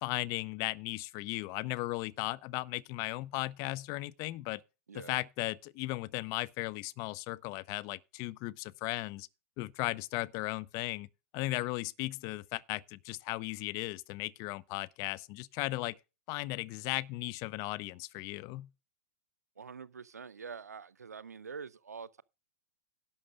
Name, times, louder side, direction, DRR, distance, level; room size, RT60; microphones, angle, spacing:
voice 1, 0.0-4.6 4.9-9.3 9.6-11.1 11.3-16.0 16.3-18.7, left 20 dB, 40° left, 0.6 m, -36 dB
voice 2, 19.6-22.2, right 5 dB, 90° right, 0.5 m, -45 dB
11.5 x 6.8 x 5.1 m
hypercardioid pair, 110°, 8 cm